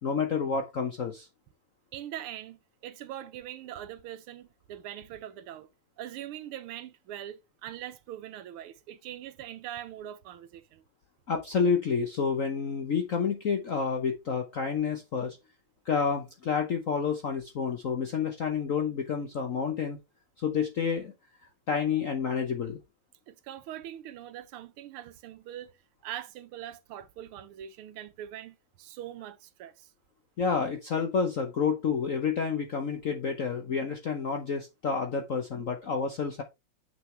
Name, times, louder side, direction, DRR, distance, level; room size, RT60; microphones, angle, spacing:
voice 1, 0.0-1.3 11.3-15.4 15.8-20.0 20.4-21.1 21.7-22.8 30.4-36.4, left 6 dB, 55° left, 0.9 m, -29 dB
voice 2, 1.9-5.7 6.0-10.8 23.3-25.8 26.0-29.9, right 11 dB, 85° right, 1.7 m, -42 dB
6.8 x 6.2 x 3.2 m
omnidirectional pair, 2.3 m